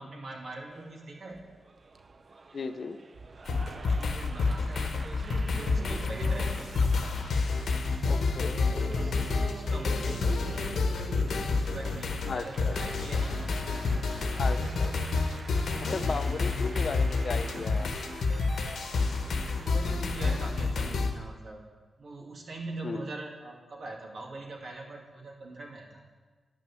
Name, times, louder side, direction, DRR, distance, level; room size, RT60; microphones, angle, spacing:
voice 1, 0.0-1.4 3.7-5.2 5.6-6.9 9.0-14.0 15.7-16.3 19.4-21.6 22.0-26.0, right 2 dB, 60° right, -1 dB, 2.5 m, -43 dB
Applause, 0.7-20.5, right 3 dB, 45° right, 0.7 m, -45 dB
voice 2, 2.5-3.0 8.1-8.5 12.3-12.8 14.4-14.9 15.8-17.9 22.8-23.1, left 4 dB, 55° left, 10 dB, 0.6 m, -35 dB
sound 1, 3.5-21.1, left 4 dB, 80° left, 1.1 m, -29 dB
10.5 x 6.1 x 8.9 m, 1.4 s
cardioid pair, 80°, 0 cm